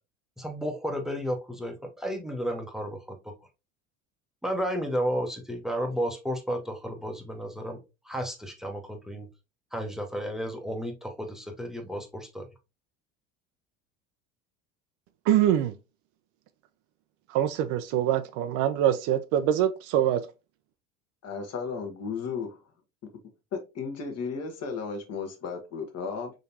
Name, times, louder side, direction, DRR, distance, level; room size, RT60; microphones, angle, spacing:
voice 1, 0.4-3.3 4.4-7.8 8.0-9.3 9.7-12.5, equal, ahead, 0.8 m, -32 dB
voice 2, 15.3-15.7 17.3-20.2, right 11 dB, 50° right, 0.5 m, -24 dB
voice 3, 21.2-22.6 23.5-26.3, left 5 dB, 40° left, 1.1 m, -34 dB
3.8 x 3.3 x 2.6 m
hypercardioid pair, 75°, 39 cm